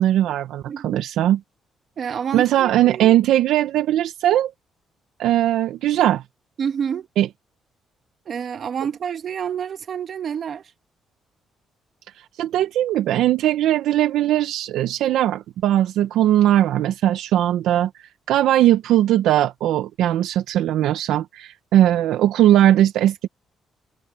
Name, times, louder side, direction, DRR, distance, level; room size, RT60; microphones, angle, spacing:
voice 1, 0.0-1.4 2.3-4.5 5.2-6.2 7.2-7.3 12.4-23.3, right 12 dB, 85° right, 0.6 m, -19 dB
voice 2, 0.7-1.0 2.0-3.1 6.6-7.1 8.2-10.6, right 7 dB, 55° right, 1.6 m, -28 dB
cardioid pair, 90°, 0 cm